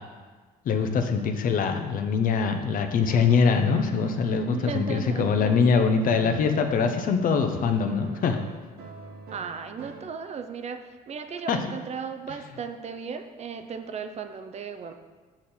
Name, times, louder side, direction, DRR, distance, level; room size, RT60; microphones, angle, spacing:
voice 1, 0.7-8.4 11.5-11.7, left 5 dB, 55° left, 6 dB, 0.8 m, -23 dB
sound 1, 2.8-10.0, right 4 dB, 70° right, 1.0 m, -45 dB
voice 2, 4.5-5.9 9.3-14.9, right 6 dB, 40° right, 8 dB, 0.6 m, -36 dB
7.3 x 6.7 x 4.4 m, 1.4 s
cardioid pair, 110°, 17 cm